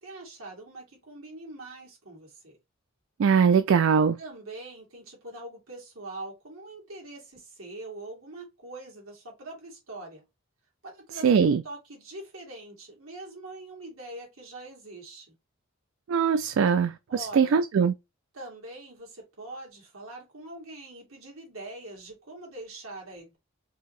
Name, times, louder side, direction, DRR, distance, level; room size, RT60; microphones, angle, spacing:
voice 1, 0.0-2.6 4.2-10.2 10.8-15.3 17.1-17.6 18.3-23.4, right 2 dB, 90° right, 2.3 m, -43 dB
voice 2, 3.2-4.2 11.2-11.6 16.1-17.9, right 6 dB, 70° right, 0.3 m, -21 dB
4.6 x 2.8 x 3.1 m
head